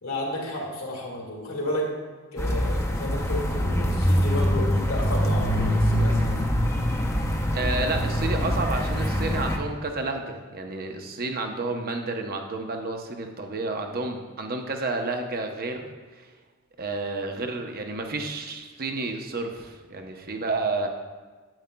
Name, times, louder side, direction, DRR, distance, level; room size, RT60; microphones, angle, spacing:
voice 1, 0.0-2.0 2.3-6.4, left 1 dB, 80° left, -2 dB, 1.8 m, -32 dB
sound 1, 2.4-9.6, equal, 15° left, 0.6 m, -24 dB
voice 2, 7.5-15.9 16.1-16.3 16.8-20.9, right 3 dB, 45° right, 4 dB, 0.7 m, -30 dB
8.9 x 8.2 x 2.2 m, 1.4 s
head